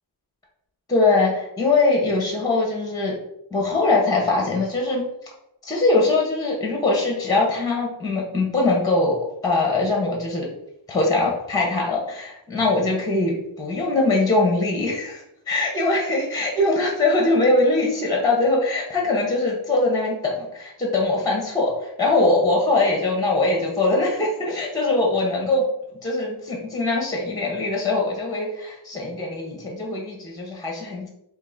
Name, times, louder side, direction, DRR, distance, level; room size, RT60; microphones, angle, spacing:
voice 1, 0.9-3.1 3.5-5.0 5.6-9.2 9.4-10.5 10.9-25.7 26.0-31.1, left 2 dB, 10° left, -1 dB, 0.8 m, -22 dB
3.7 x 2.8 x 3.8 m, 0.80 s
wide cardioid pair, 155°, 46 cm